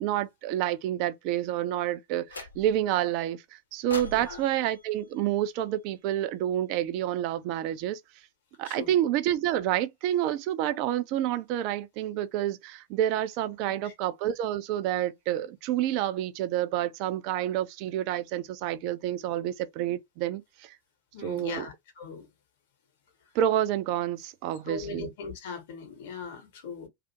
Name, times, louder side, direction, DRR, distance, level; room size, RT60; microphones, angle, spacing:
voice 1, 0.0-8.0 8.6-20.8 21.2-21.7 23.3-25.1, right 12 dB, 45° right, 0.3 m, -29 dB
sound 1, 2.3-2.9 3.9-6.1, left 3 dB, 75° left, 0.6 m, -44 dB
voice 2, 4.1-4.4 8.6-8.9 13.8-13.9 21.1-22.3 24.7-26.9, left 5 dB, 55° left, 0.9 m, -39 dB
2.4 x 2.4 x 2.6 m
figure-of-eight pair, 90°, 0 cm